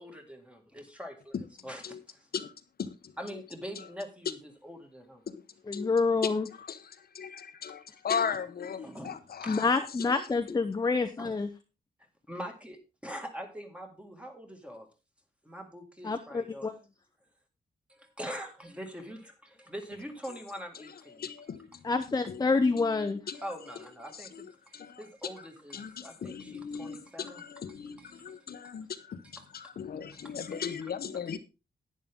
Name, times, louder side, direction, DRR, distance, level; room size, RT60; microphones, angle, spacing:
voice 1, 0.0-1.3 1.6-2.3 3.2-5.2 8.8-9.6 11.2-11.4 12.3-14.9 15.4-16.7 17.9-21.2 23.4-27.4 27.7-28.4 29.2-29.3 29.6-29.7 30.2-30.3, equal, 5° right, 2.1 m, -43 dB
voice 2, 2.8-3.4 3.8-3.9 5.3-5.4 5.7-5.9 6.2-9.7 10.1-10.3 20.7-20.9 21.2-21.8 22.3-23.4 24.1-25.0 25.7-29.2 29.5-31.4, left 7 dB, 60° left, 0.9 m, -38 dB
voice 3, 5.7-6.5 9.5-11.5 16.0-16.7 21.8-23.2, left 4 dB, 20° left, 0.7 m, -27 dB
11.0 x 9.6 x 3.6 m
wide cardioid pair, 145°, 18 cm